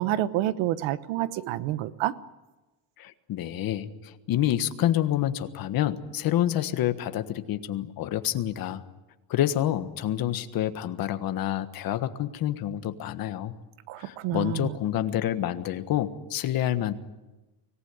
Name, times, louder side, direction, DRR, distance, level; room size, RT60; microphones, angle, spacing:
voice 1, 0.0-2.1 13.9-14.8, right 13 dB, 85° right, 14 dB, 1.2 m, -28 dB
voice 2, 3.0-8.8 9.3-13.5 14.0-16.9, left 12 dB, 50° left, 10 dB, 1.5 m, -28 dB
25.0 x 18.5 x 9.5 m, 1.1 s
cardioid pair, 160°, 46 cm